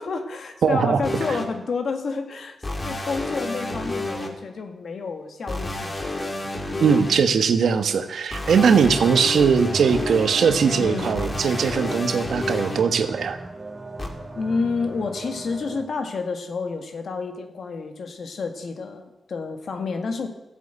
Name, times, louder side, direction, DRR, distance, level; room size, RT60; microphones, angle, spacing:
voice 1, 0.0-2.6 2.8-6.4 6.7-7.0 10.8-11.2 14.4-20.3, left 4 dB, 65° left, 6 dB, 1.8 m, -30 dB
voice 2, 0.6-1.0 6.8-13.4, right 6 dB, 75° right, 9 dB, 1.2 m, -20 dB
sound 1, 1.0-1.4 2.6-4.3 5.5-7.1 8.3-12.8 14.0-14.1, left 2 dB, 30° left, 2.3 m, -30 dB
sound 2, 8.7-15.8, right 2 dB, 30° right, 3.3 m, -38 dB
13.5 x 8.4 x 8.2 m, 0.95 s
cardioid pair, 80°, 0 cm